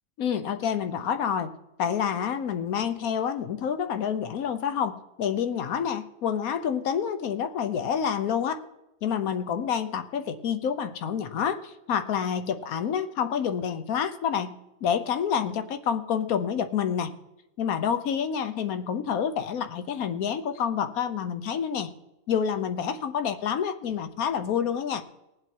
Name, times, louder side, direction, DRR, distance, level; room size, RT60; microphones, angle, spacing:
voice 1, 0.2-1.5 1.8-8.6 9.0-17.1 17.6-21.9 22.3-25.0, left 8 dB, 75° left, 11 dB, 1.2 m, -28 dB
19.5 x 7.7 x 4.5 m, 0.92 s
omnidirectional pair, 1.5 m